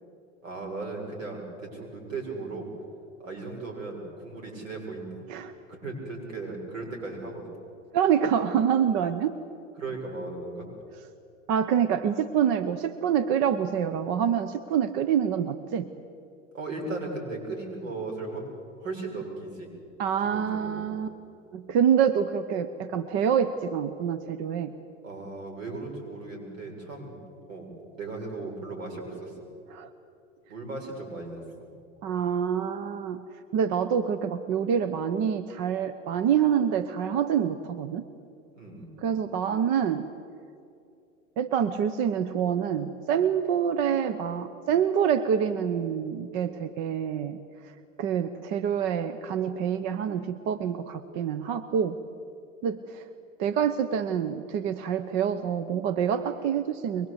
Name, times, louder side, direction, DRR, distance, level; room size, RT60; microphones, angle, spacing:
voice 1, 0.4-2.7 3.2-5.3 5.7-7.5 9.8-10.7 16.5-18.5 18.8-19.7 20.2-20.8 25.0-27.2 27.5-27.7 27.9-29.3 30.5-31.4 38.5-38.9, right 3 dB, 85° right, 1 dB, 7.2 m, -36 dB
voice 2, 7.9-9.4 11.5-15.9 20.0-21.1 21.5-24.7 29.7-29.9 32.0-33.3 33.5-38.0 39.0-40.1 41.4-47.4 47.6-47.7 48.0-52.0 52.6-53.0 53.4-57.1, right 8 dB, 50° right, 12 dB, 1.1 m, -26 dB
23.5 x 22.5 x 8.3 m, 2.5 s
hypercardioid pair, 110°, 38 cm